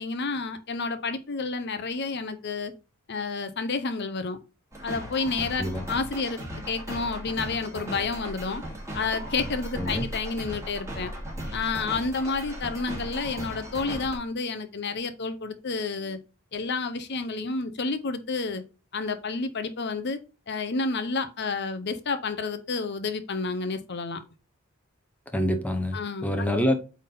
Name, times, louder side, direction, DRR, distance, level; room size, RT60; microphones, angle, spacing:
voice 1, 0.0-2.7 3.1-4.4 4.8-6.4 6.7-8.6 8.9-11.1 11.5-16.2 16.5-18.6 18.9-20.2 20.5-24.2 25.9-26.3, left 4 dB, 50° left, 0.8 m, -30 dB
sound 1, 4.7-14.1, equal, 15° right, 2.5 m, -37 dB
voice 2, 25.3-26.7, equal, 5° left, 0.9 m, -26 dB
8.3 x 3.6 x 3.8 m
head